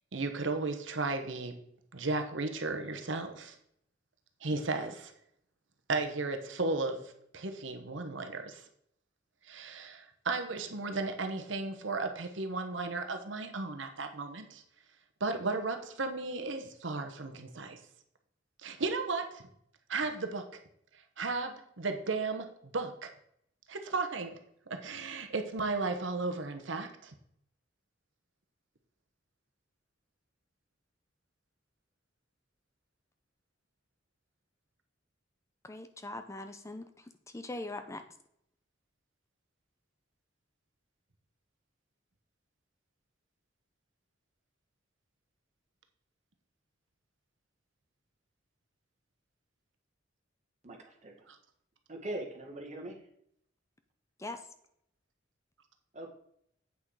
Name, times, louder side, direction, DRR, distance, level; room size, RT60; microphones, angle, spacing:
voice 1, 0.1-1.5 1.9-3.6 4.4-5.1 5.9-7.0 7.3-8.6 9.5-14.6 15.2-17.8 18.6-19.4 19.9-20.4 21.2-23.1 23.7-24.3 24.7-27.1 51.3-51.4, right 3 dB, 75° right, 6 dB, 1.0 m, -34 dB
voice 2, 35.6-38.0 54.2-54.5, left 2 dB, 15° left, 8 dB, 0.5 m, -42 dB
voice 3, 50.6-51.3 51.9-53.0 55.9-56.1, right 1 dB, 40° right, 2 dB, 1.7 m, -41 dB
8.5 x 6.1 x 4.8 m, 0.70 s
head